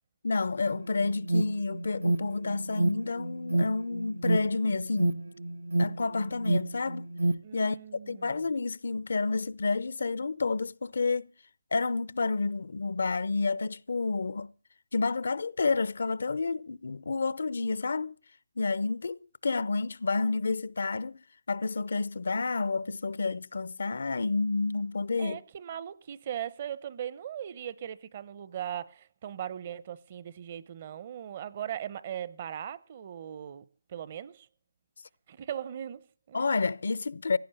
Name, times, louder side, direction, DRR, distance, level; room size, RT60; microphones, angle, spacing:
voice 1, 0.2-5.2 5.8-7.1 7.5-7.8 8.1-11.3 11.7-14.5 14.9-18.2 18.6-21.2 21.5-25.4 36.3-37.4, left 3 dB, 70° left, 0.6 m, -30 dB
Alarm, 0.7-7.4, right 1 dB, 85° right, 1.0 m, -29 dB
voice 2, 7.4-8.5 25.2-34.5 35.3-36.4, right 10 dB, 40° right, 0.8 m, -39 dB
16.5 x 9.5 x 6.8 m
hypercardioid pair, 155°, 0 cm